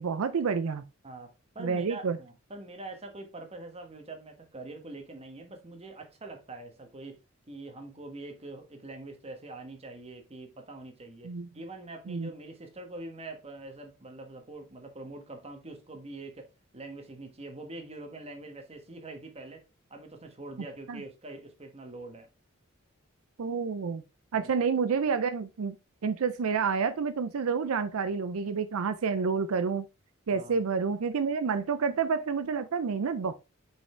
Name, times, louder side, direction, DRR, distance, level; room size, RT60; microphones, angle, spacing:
voice 1, 0.0-0.8 1.6-2.2 11.2-11.5 12.1-12.3 20.9-21.0 23.4-24.0 24.3-25.8 26.0-29.8 30.3-33.3, right 5 dB, 80° right, 0.5 m, -29 dB
voice 2, 1.0-7.2 7.5-19.6 19.9-22.3 24.3-24.5 30.3-30.6, right 2 dB, 30° right, 1.3 m, -44 dB
5.6 x 5.6 x 3.3 m
head